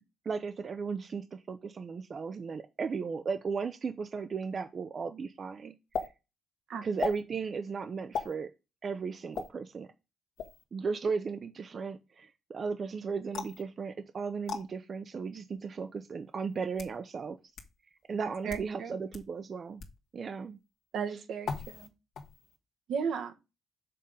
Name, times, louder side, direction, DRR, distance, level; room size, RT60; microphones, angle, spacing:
voice 1, 0.3-6.1 6.8-8.5 8.8-9.9 10.7-17.4 18.1-19.8 20.1-20.6 21.1-21.3, right 5 dB, 45° right, 9 dB, 0.5 m, -36 dB
sound 1, 5.9-6.1 7.0-7.2 8.1-8.3 9.3-9.5 10.4-10.6 13.3-13.6 14.5-14.6 15.6-15.7 16.5-17.0 17.6-17.7 18.4-18.7 19.1-19.2 19.8-20.0 21.4-21.9 22.1-22.6, left 5 dB, 65° left, 1.4 m, -37 dB
voice 2, 18.2-18.9 20.9-21.9 22.9-23.3, right 6 dB, 75° right, 5 dB, 1.1 m, -35 dB
6.7 x 3.7 x 5.4 m, 0.27 s
cardioid pair, 90°, 0 cm